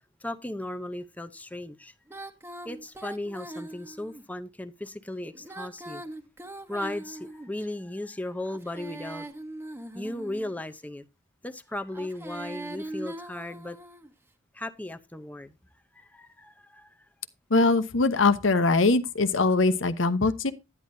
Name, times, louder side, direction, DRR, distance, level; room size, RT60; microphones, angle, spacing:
voice 1, 0.2-1.9 2.6-6.0 6.7-9.3 9.9-11.0 11.4-13.8 14.5-15.5 15.9-17.0, left 1 dB, 10° left, 0.7 m, -36 dB
Female singing, 2.1-4.2 5.3-7.7 8.4-10.6 11.9-14.1, right 1 dB, 10° right, 1.2 m, -41 dB
voice 2, 17.5-20.5, left 3 dB, 75° left, 1.0 m, -22 dB
10.5 x 10.0 x 2.7 m
head